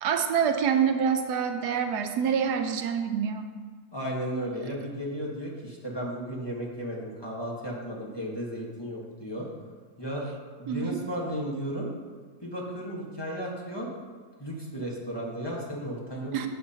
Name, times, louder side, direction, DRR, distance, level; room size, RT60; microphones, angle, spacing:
voice 1, 0.0-3.5 10.7-11.0 16.3-16.5, right 7 dB, 85° right, 7 dB, 1.2 m, -26 dB
voice 2, 3.9-9.5 10.0-10.3 10.6-11.9 12.4-13.9 14.4-16.5, equal, 15° left, -4 dB, 1.3 m, -34 dB
12.0 x 7.8 x 2.9 m, 1.5 s
omnidirectional pair, 1.7 m